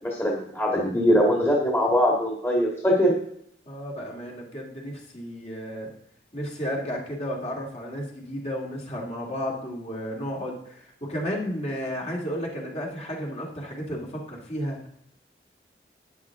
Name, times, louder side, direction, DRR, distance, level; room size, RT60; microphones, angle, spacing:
voice 1, 0.0-3.1, equal, 15° left, -2 dB, 1.9 m, -22 dB
voice 2, 3.7-5.9 6.3-14.8, equal, 35° left, -1 dB, 2.3 m, -33 dB
12.5 x 9.5 x 3.6 m, 0.69 s
head